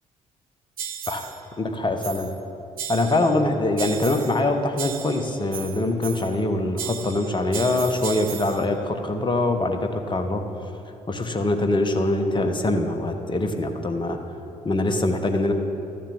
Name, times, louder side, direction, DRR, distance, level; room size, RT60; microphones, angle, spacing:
sound 1, 0.8-1.4 2.0-2.4 2.8-3.4 3.8-4.4 4.8-6.4 6.8-8.7, right 9 dB, 55° right, 0.8 m, -35 dB
voice 1, 1.6-2.3 2.9-14.2 14.6-15.5, left 2 dB, 25° left, 6 dB, 1.3 m, -24 dB
13.0 x 7.3 x 7.4 m, 2.9 s
figure-of-eight pair, 45°, 18 cm